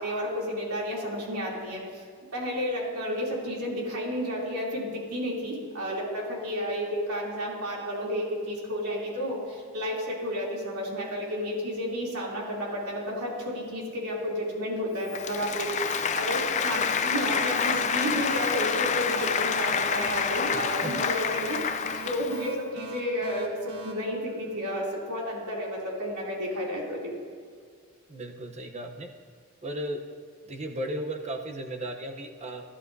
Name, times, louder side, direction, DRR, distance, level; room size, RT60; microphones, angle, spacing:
voice 1, 0.0-2.0 2.3-27.1, equal, 90° right, -4 dB, 3.1 m, -32 dB
Applause, 15.1-22.5, left 6 dB, 30° left, 0.4 m, -28 dB
sound 1, 16.8-25.1, right 2 dB, 70° right, 1.2 m, -43 dB
voice 2, 20.5-21.1 28.1-29.1 29.6-30.0 30.5-32.7, right 1 dB, 30° right, 4 dB, 0.9 m, -35 dB
15.0 x 11.0 x 2.7 m, 2.1 s
head